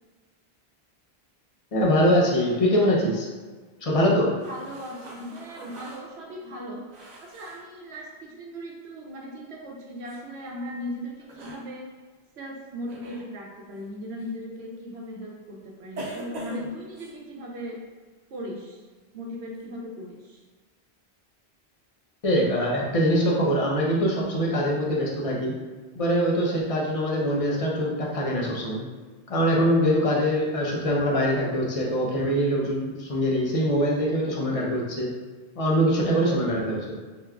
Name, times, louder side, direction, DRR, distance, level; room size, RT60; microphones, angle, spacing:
voice 1, 1.7-3.3 3.8-4.3 22.2-25.5 25.9-28.9 29.3-35.1 35.6-36.9, equal, 40° left, -3 dB, 0.6 m, -23 dB
sound 1, 4.4-7.6 10.1-10.2 11.2-11.7 12.9-13.3 14.2-14.3 16.0-17.1, right 2 dB, 50° right, 0.6 m, -41 dB
voice 2, 4.5-6.8 7.2-11.9 12.4-17.8 18.3-18.8 19.1-20.4, equal, 80° right, -2 dB, 1.0 m, -38 dB
3.4 x 2.9 x 2.3 m, 1.4 s
omnidirectional pair, 1.1 m